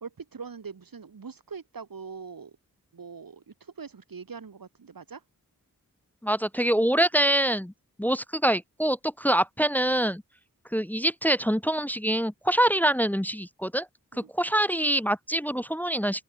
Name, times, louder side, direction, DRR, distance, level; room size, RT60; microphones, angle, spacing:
voice 1, 0.0-2.6 2.9-5.2 14.1-14.3, right 5 dB, 70° right, 1.9 m, -42 dB
voice 2, 6.2-7.7 8.0-10.2 10.7-13.9 14.4-16.2, right 1 dB, 5° left, 0.5 m, -25 dB
open air
wide cardioid pair, 85°, 36 cm